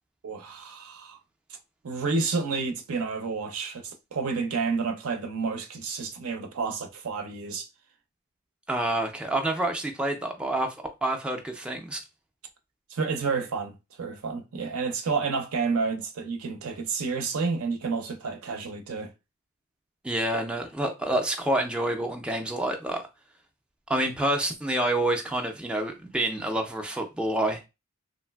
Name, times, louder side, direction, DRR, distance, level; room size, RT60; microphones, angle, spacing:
voice 1, 0.2-1.2 1.8-7.7 12.9-19.1, right 4 dB, 75° right, 0.5 m, -30 dB
voice 2, 8.7-10.8 11.0-12.0 20.0-23.0 23.9-27.6, right 1 dB, 5° right, 0.3 m, -28 dB
3.1 x 2.5 x 2.2 m
head